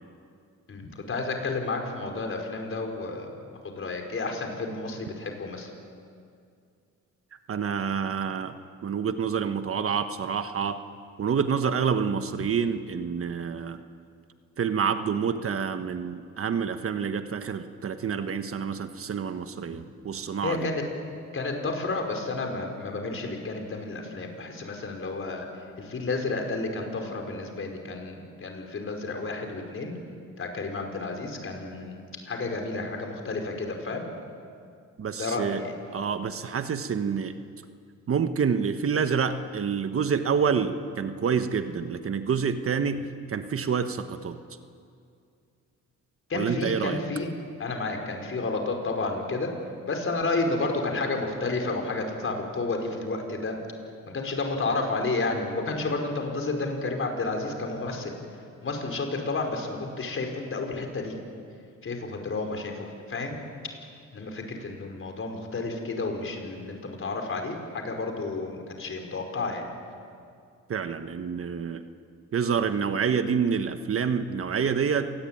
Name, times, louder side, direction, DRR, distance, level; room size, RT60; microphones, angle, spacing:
voice 1, 0.7-3.4 3.6-5.7 20.4-20.8 21.3-25.5 25.8-29.9 30.4-34.0 35.2-35.7 46.3-47.3 47.6-49.5 49.9-53.6 54.1-58.1 58.6-61.1 61.8-63.4 64.1-69.7, left 3 dB, 45° left, 3 dB, 5.2 m, -31 dB
voice 2, 7.5-8.5 8.8-10.8 11.2-13.8 14.6-20.7 35.0-35.6 35.9-37.3 38.1-44.4 46.3-47.0 70.7-71.8 72.3-75.1, right 6 dB, 45° right, 9 dB, 1.4 m, -27 dB
27.0 x 19.0 x 9.2 m, 2.3 s
cardioid pair, 90°, 30 cm